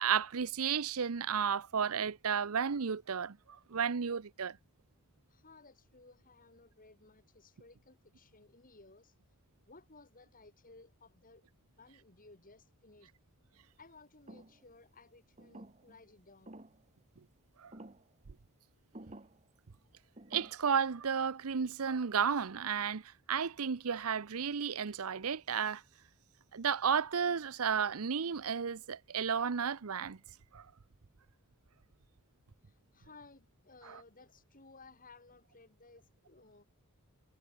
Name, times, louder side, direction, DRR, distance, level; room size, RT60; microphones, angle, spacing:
voice 1, 0.0-3.4 3.7-4.6 17.6-17.7 20.3-25.8 26.5-30.2 30.5-30.7 33.9-34.0, right 7 dB, 70° right, 0.7 m, -33 dB
voice 2, 5.3-9.4 9.7-11.4 11.8-13.1 13.8-16.6 32.6-36.6, left 3 dB, 40° left, 7.1 m, -59 dB
sound 1, 14.3-14.6 15.4-16.0 16.5-16.8 17.7-18.1 18.9-19.4 20.2-20.5, right 1 dB, 30° right, 2.2 m, -51 dB
head